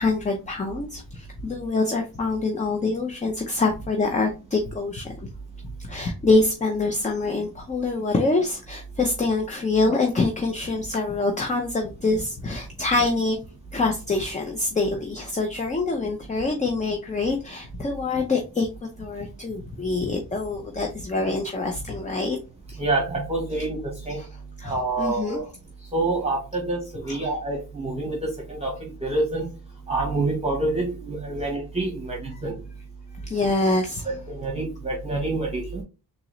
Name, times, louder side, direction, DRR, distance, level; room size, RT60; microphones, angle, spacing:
voice 1, 0.0-5.3 5.8-13.4 13.7-18.7 19.0-22.4 24.1-24.3 24.6-25.4 27.1-27.3 33.2-34.2, left 3 dB, 20° left, 3 dB, 0.5 m, -25 dB
voice 2, 22.8-24.2 24.6-25.4 25.9-29.5 29.9-32.5 34.1-35.8, right 2 dB, 15° right, -1 dB, 1.0 m, -27 dB
3.7 x 2.9 x 3.0 m, 0.31 s
wide cardioid pair, 130°, 39 cm